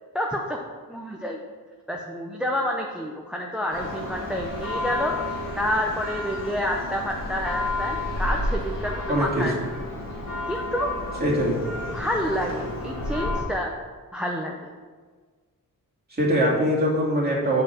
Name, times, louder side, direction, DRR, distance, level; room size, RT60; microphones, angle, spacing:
voice 1, 0.1-0.6 0.9-1.4 1.9-5.1 5.6-9.5 10.5-10.9 11.9-13.7 14.1-14.7, equal, 5° right, 0 dB, 0.6 m, -28 dB
Church bell, 3.7-13.4, left 2 dB, 65° left, 2.0 m, -31 dB
voice 2, 9.1-9.4 11.2-11.6 16.2-17.6, equal, 25° right, -6 dB, 2.4 m, -22 dB
7.5 x 4.5 x 6.0 m, 1.5 s
wide cardioid pair, 120°, 35 cm